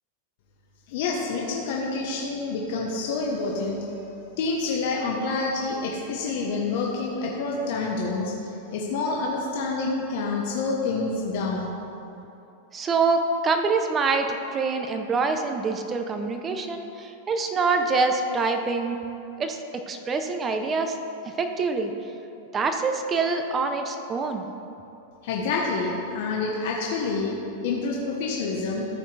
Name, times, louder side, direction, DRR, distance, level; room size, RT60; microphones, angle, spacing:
voice 1, 0.9-3.8 4.4-11.7 25.2-28.9, left 3 dB, 60° left, -2 dB, 1.1 m, -28 dB
voice 2, 12.7-19.0 19.4-19.6 19.9-21.0 21.4-21.9 22.5-24.5, right 4 dB, 20° right, 6 dB, 0.7 m, -25 dB
13.5 x 5.5 x 3.4 m, 2.8 s
supercardioid pair, 145°, 0 cm